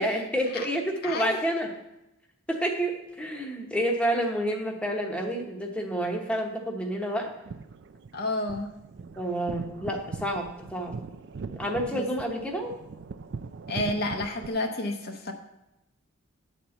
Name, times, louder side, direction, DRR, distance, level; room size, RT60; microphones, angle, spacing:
voice 1, 0.0-1.7 2.5-7.3 9.2-10.9 11.5-12.7, right 1 dB, 5° left, 0 dB, 1.0 m, -29 dB
voice 2, 1.0-1.4 8.1-8.7 11.9-12.1 13.7-15.3, left 2 dB, 45° left, 3 dB, 0.8 m, -30 dB
sound 1, 7.3-14.5, right 4 dB, 50° right, 0.4 m, -40 dB
10.5 x 4.3 x 7.7 m, 0.93 s
head